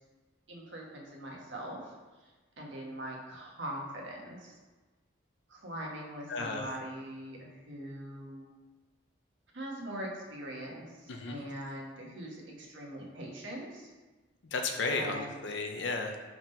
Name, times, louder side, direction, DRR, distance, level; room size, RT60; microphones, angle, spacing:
voice 1, 0.5-1.9 2.2-2.3 2.6-4.6 5.5-8.5 9.5-13.9 14.9-15.3, right 1 dB, 75° right, -1 dB, 1.3 m, -42 dB
voice 2, 6.3-6.6 11.1-11.4 14.5-16.2, left 3 dB, 70° left, 3 dB, 0.5 m, -33 dB
4.8 x 3.8 x 5.2 m, 1.3 s
head